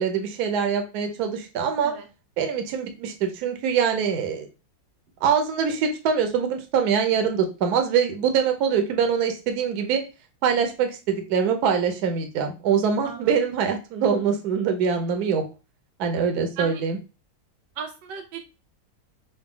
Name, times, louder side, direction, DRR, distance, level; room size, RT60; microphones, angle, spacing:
voice 1, 0.0-1.9 2.4-4.5 5.2-10.0 10.4-15.4 16.0-17.0, right 7 dB, 65° right, 5 dB, 1.1 m, -24 dB
voice 2, 17.8-18.4, right 6 dB, 90° right, 4 dB, 1.5 m, -35 dB
4.0 x 2.2 x 3.7 m, 0.31 s
omnidirectional pair, 2.0 m